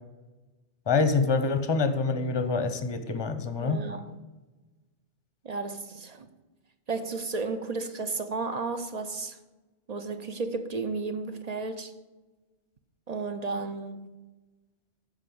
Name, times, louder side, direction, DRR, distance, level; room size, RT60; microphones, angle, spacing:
voice 1, 0.9-3.8, left 4 dB, 25° left, 0.7 m, -26 dB
voice 2, 3.6-4.2 5.4-6.3 6.9-9.4 9.9-12.0 13.1-14.2, right 4 dB, 45° right, 0.7 m, -33 dB
8.9 x 5.3 x 7.8 m
omnidirectional pair, 1.2 m